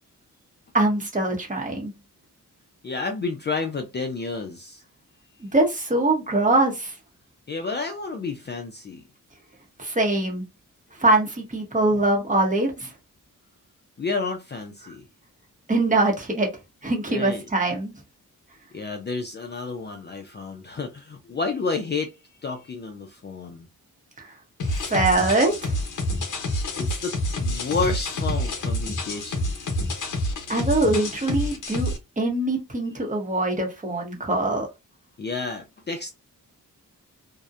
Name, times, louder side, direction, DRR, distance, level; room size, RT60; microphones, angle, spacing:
voice 1, 0.7-1.9 5.5-6.9 9.8-10.4 11.0-12.9 15.7-16.5 16.8-17.9 24.2-24.3 24.7-25.7 30.5-34.7, right 2 dB, 25° right, 0.7 m, -23 dB
voice 2, 2.8-4.8 7.5-9.0 14.0-15.0 17.1-17.4 18.7-22.1 22.4-23.7 26.8-29.5 35.2-36.1, left 4 dB, 35° left, 0.4 m, -30 dB
sound 1, 24.6-32.0, left 1 dB, 65° left, 0.8 m, -28 dB
2.6 x 2.0 x 2.3 m
wide cardioid pair, 125°, 33 cm